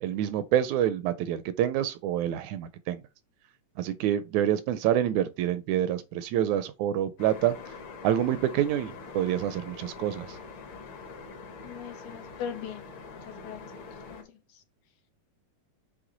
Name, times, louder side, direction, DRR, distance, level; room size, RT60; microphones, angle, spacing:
voice 1, 0.0-3.0 3.8-7.6 8.0-10.4, right 11 dB, 80° right, 1.8 m, -27 dB
sound 1, 7.2-14.2, left 4 dB, 55° left, 1.7 m, -44 dB
voice 2, 11.6-12.9 13.3-13.7 14.1-14.6, left 8 dB, 75° left, 2.4 m, -40 dB
7.9 x 3.2 x 3.8 m
omnidirectional pair, 3.6 m